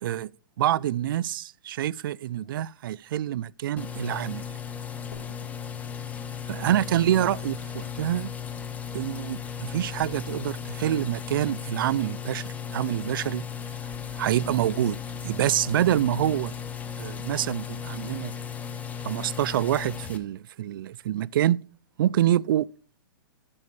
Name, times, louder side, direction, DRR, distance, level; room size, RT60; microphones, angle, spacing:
voice 1, 0.6-4.4 6.5-8.3 8.9-13.4 14.1-15.0 15.2-16.5 17.0-18.3 19.0-21.6 22.0-22.7, right 12 dB, 65° right, 0.4 m, -26 dB
sound 1, 3.8-20.2, left 8 dB, 10° left, 0.8 m, -36 dB
sound 2, 5.1-8.6, left 2 dB, 90° left, 3.7 m, -53 dB
11.0 x 8.8 x 3.2 m
hypercardioid pair, 150°, 12 cm